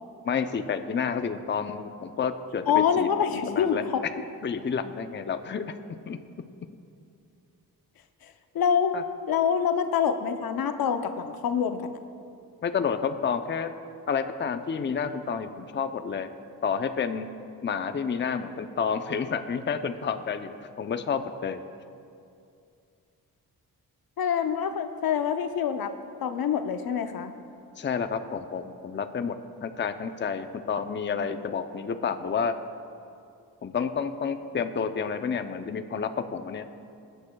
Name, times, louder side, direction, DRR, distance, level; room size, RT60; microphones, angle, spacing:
voice 1, 0.2-3.1 3.5-3.8 4.4-5.8 6.1-6.2 8.9-9.0 12.6-13.7 14.1-16.3 16.6-17.3 17.6-20.5 20.8-21.6 27.8-29.3 29.6-32.5 33.6-36.7, left 6 dB, 30° left, 8 dB, 0.6 m, -30 dB
voice 2, 2.7-4.0 8.2-8.9 9.3-12.0 24.2-25.9 26.2-27.3, left 7 dB, 65° left, 8 dB, 0.7 m, -26 dB
20.5 x 9.9 x 2.3 m, 2.5 s
cardioid pair, 65°, 38 cm